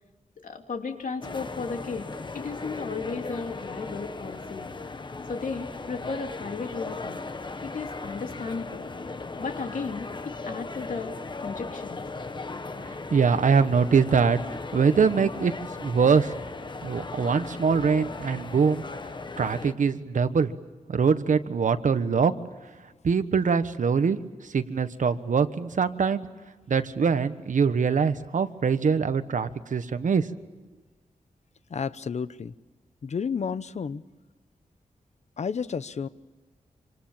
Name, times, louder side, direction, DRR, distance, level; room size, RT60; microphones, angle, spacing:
voice 1, 0.4-2.1 2.3-4.7 5.3-7.2 7.6-8.8 9.4-12.0, left 4 dB, 70° left, 4 dB, 3.0 m, -35 dB
sound 1, 1.2-19.7, left 3 dB, 35° left, 1.2 m, -37 dB
voice 2, 12.8-15.5 15.8-16.3 16.8-18.8 19.4-20.5 20.9-22.4 23.0-24.2 24.5-26.3 26.7-30.3, right 5 dB, 65° right, 11 dB, 1.3 m, -23 dB
voice 3, 31.7-32.5 33.0-34.0 35.4-36.1, left 6 dB, 55° left, 15 dB, 0.8 m, -31 dB
27.0 x 26.5 x 7.4 m, 1.3 s
wide cardioid pair, 130°, 14 cm